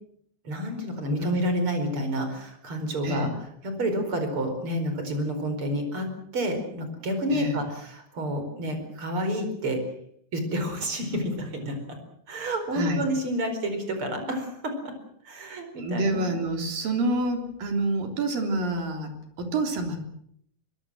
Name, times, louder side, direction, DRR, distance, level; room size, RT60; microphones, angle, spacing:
voice 1, 0.4-3.3 3.6-6.1 6.3-9.8 10.3-11.8 12.3-14.9 15.2-16.3, equal, 30° right, 7 dB, 5.2 m, -29 dB
voice 2, 12.7-13.0 15.8-19.1 19.4-20.0, right 2 dB, 60° right, 5 dB, 4.9 m, -27 dB
22.5 x 22.0 x 7.7 m, 0.70 s
omnidirectional pair, 4.6 m